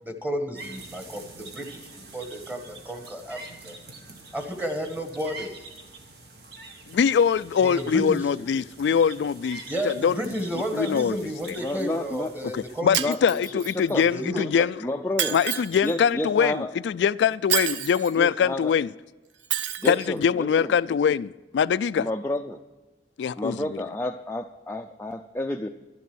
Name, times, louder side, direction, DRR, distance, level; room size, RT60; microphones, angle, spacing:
voice 1, 0.0-1.9 2.1-3.8 4.3-5.6 7.6-8.3 9.7-13.0 13.9-14.4, equal, 10° right, 1.4 m, -32 dB
sound 1, 0.6-12.8, right 3 dB, 60° right, 1.6 m, -45 dB
voice 2, 6.9-10.2 10.7-11.6 12.5-14.8 15.3-18.9 19.9-22.0 23.2-23.7, left 7 dB, 75° left, 0.3 m, -23 dB
voice 3, 11.6-12.3 13.0-14.0 14.6-15.4 15.8-16.7 18.2-18.7 19.8-20.7 22.0-22.6 23.4-25.7, left 1 dB, 15° left, 0.4 m, -30 dB
Shatter, 12.9-13.9 15.2-15.9 17.5-18.1 19.5-20.1, right 9 dB, 85° right, 0.7 m, -28 dB
11.5 x 11.0 x 6.2 m
head